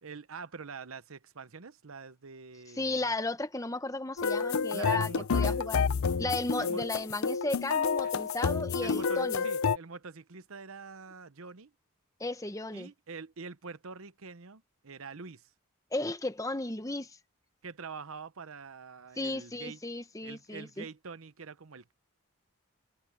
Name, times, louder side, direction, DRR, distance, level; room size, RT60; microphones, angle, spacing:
voice 1, 0.0-3.1 4.7-5.6 6.6-6.8 8.0-8.1 8.8-11.7 12.7-15.5 17.6-19.8 20.2-21.9, right 4 dB, 85° right, 0.9 m, -45 dB
voice 2, 2.8-5.8 6.2-9.4 12.2-12.9 15.9-17.1 19.2-20.8, left 2 dB, 15° left, 0.9 m, -34 dB
sound 1, 4.2-9.8, left 5 dB, 85° left, 0.5 m, -29 dB
head